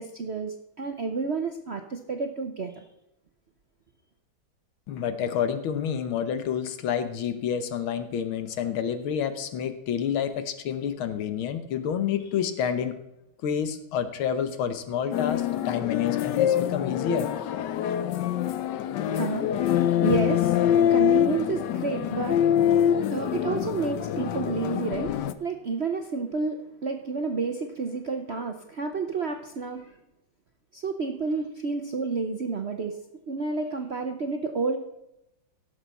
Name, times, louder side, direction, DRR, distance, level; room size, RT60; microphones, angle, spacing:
voice 1, 0.0-2.8 19.1-22.8 23.1-30.0 30.7-33.0 33.3-34.8, right 4 dB, 60° right, 5 dB, 0.7 m, -30 dB
voice 2, 4.9-12.9 13.4-17.3, left 8 dB, 90° left, 10 dB, 1.9 m, -29 dB
sound 1, 15.1-25.3, left 10 dB, 70° left, 1.2 m, -25 dB
17.5 x 6.9 x 4.2 m, 0.87 s
omnidirectional pair, 2.2 m